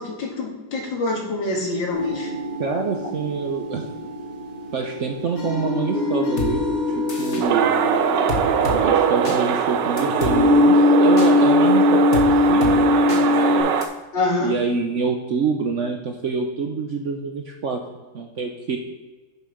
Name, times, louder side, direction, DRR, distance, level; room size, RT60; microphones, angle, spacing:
voice 1, 0.0-2.3 14.1-14.5, left 2 dB, 90° left, -1 dB, 2.6 m, -25 dB
sound 1, 1.9-13.6, left 2 dB, 55° left, 3.5 m, -21 dB
voice 2, 2.6-3.9 4.7-6.7 6.9-7.7 8.7-13.7 14.4-17.8 18.1-18.8, right 4 dB, 60° right, 3 dB, 0.8 m, -26 dB
sound 2, 6.4-6.5 7.1-7.4 8.3-8.8 9.2-9.4 10.0-10.4 11.2-11.3 12.1-12.3 12.6-12.7 13.1-13.2 13.8-13.9, left 4 dB, 40° left, 1.3 m, -28 dB
sound 3, 7.4-13.9, right 8 dB, 80° right, 1.3 m, -22 dB
6.9 x 6.5 x 5.3 m, 1.2 s
omnidirectional pair, 2.0 m